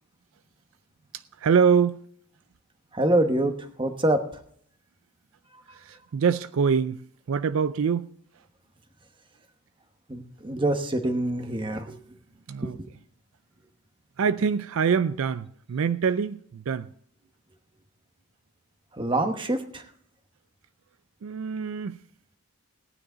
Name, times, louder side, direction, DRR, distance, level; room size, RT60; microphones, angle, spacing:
voice 1, 1.1-2.0 5.7-8.1 12.5-12.8 14.2-16.9 21.2-22.0, right 6 dB, 65° right, 0.4 m, -25 dB
voice 2, 2.9-4.2 10.1-12.0 12.6-12.9 18.9-19.8, right 1 dB, 20° right, 1.1 m, -25 dB
17.5 x 9.8 x 3.9 m
head